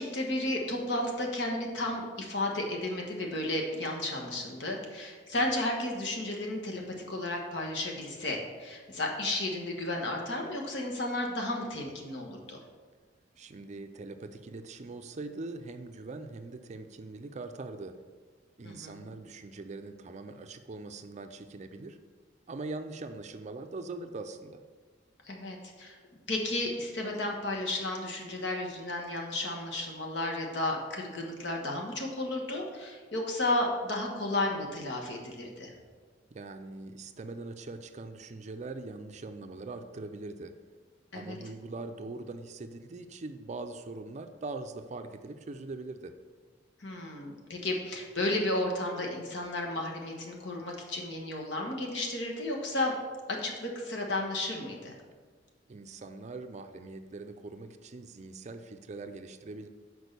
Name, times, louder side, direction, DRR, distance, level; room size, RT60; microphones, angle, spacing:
voice 1, 0.0-6.8 7.1-12.6 18.6-19.0 25.2-26.0 26.3-35.7 41.1-41.4 46.8-53.0 53.3-54.9, left 1 dB, 70° left, 0 dB, 1.4 m, -33 dB
voice 2, 13.4-17.9 18.6-22.0 22.5-24.6 36.3-40.5 41.1-46.1 55.7-59.7, right 3 dB, 40° right, 8 dB, 0.4 m, -42 dB
6.3 x 4.7 x 6.7 m, 1.5 s
head